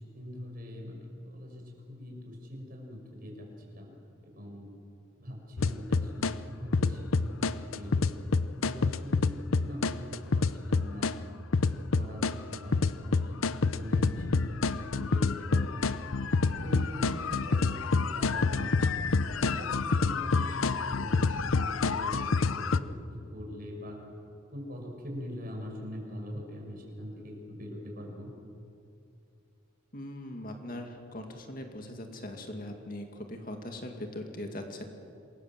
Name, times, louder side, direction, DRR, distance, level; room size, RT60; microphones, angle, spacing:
voice 1, 0.1-4.0 4.2-4.7 5.2-8.3 8.6-11.1 11.7-15.9 16.6-18.7 19.2-24.0 24.5-28.3, equal, 45° right, 0 dB, 6.2 m, -42 dB
sound 1, 5.6-6.3 6.7-11.1 11.5-22.8, left 4 dB, 85° left, 0.7 m, -27 dB
voice 2, 29.9-34.8, left 1 dB, 45° left, 4 dB, 2.2 m, -40 dB
27.5 x 21.5 x 7.7 m, 2.5 s
head